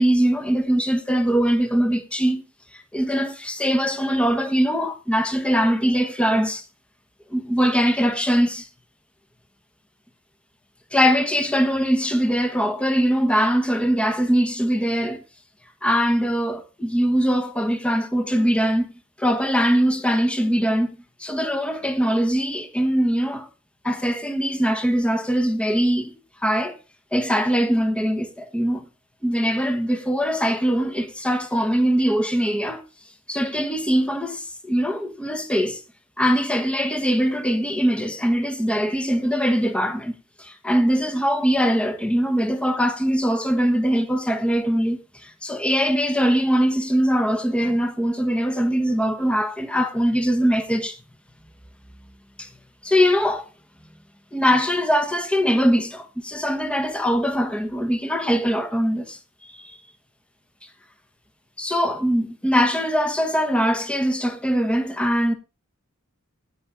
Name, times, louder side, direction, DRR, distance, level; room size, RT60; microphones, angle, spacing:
voice 1, 0.0-2.4 2.7-6.6 7.3-8.7 10.9-15.2 15.8-18.9 19.2-20.9 21.2-23.5 23.8-26.1 26.4-26.8 27.1-28.9 29.2-32.8 33.3-35.8 36.2-51.0 52.4-52.5 52.8-53.4 54.3-59.8 61.6-65.3, equal, 5° left, 1.1 m, -22 dB
16.5 x 5.9 x 3.6 m
head